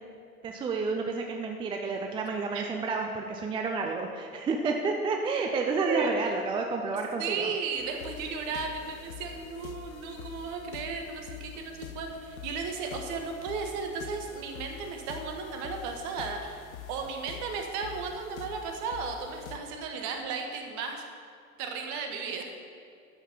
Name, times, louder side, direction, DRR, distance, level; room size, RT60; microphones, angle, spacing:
voice 1, 0.4-7.5, right 4 dB, 10° right, 3 dB, 0.4 m, -30 dB
voice 2, 5.8-6.1 7.2-21.0 21.6-22.4, right 5 dB, 40° right, 3 dB, 1.6 m, -35 dB
sound 1, 7.8-19.6, left 8 dB, 70° left, 0.8 m, -45 dB
12.0 x 5.7 x 5.7 m, 2.4 s
figure-of-eight pair, 90°, 43 cm